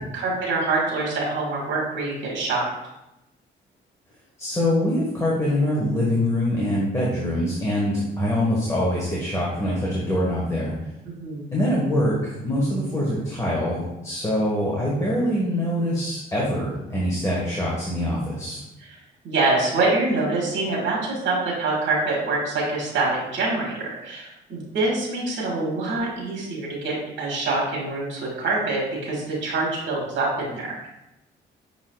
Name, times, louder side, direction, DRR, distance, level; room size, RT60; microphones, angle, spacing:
voice 1, 0.1-2.6 11.0-11.5 19.2-30.9, right 3 dB, 70° right, -3 dB, 1.6 m, -25 dB
voice 2, 4.4-10.7 11.5-18.6, left 1 dB, 15° left, -6 dB, 1.3 m, -24 dB
6.0 x 3.9 x 2.3 m, 0.92 s
cardioid pair, 90°, 20 cm